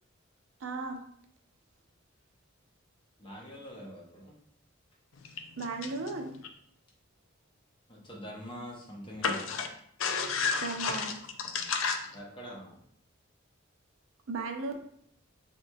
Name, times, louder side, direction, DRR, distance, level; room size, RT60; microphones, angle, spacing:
voice 1, 0.6-1.0 5.6-6.3 10.6-11.2 14.3-14.8, right 3 dB, 80° right, 4 dB, 0.5 m, -35 dB
voice 2, 3.2-4.3 7.9-9.6 12.1-12.8, equal, 25° left, -3 dB, 0.8 m, -44 dB
voice 3, 9.2-9.7 10.0-11.1 11.4-12.1, left 5 dB, 75° left, 5 dB, 0.4 m, -30 dB
3.3 x 2.8 x 2.3 m, 0.66 s
head